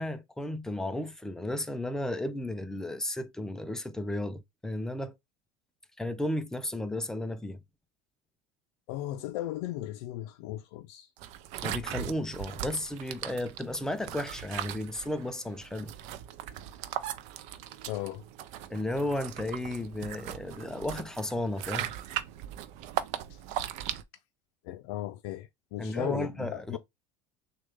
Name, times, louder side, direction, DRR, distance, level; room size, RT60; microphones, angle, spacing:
voice 1, 0.0-5.1 6.0-7.6 11.6-15.9 18.7-21.9 25.8-26.8, left 1 dB, 5° left, 0.3 m, -34 dB
voice 2, 8.9-11.1 17.9-18.2 23.3-23.4 24.6-26.8, left 14 dB, 90° left, 0.4 m, -36 dB
sound 1, 11.2-24.0, right 11 dB, 55° right, 0.5 m, -39 dB
6.4 x 2.3 x 3.4 m
cardioid pair, 165°, 14 cm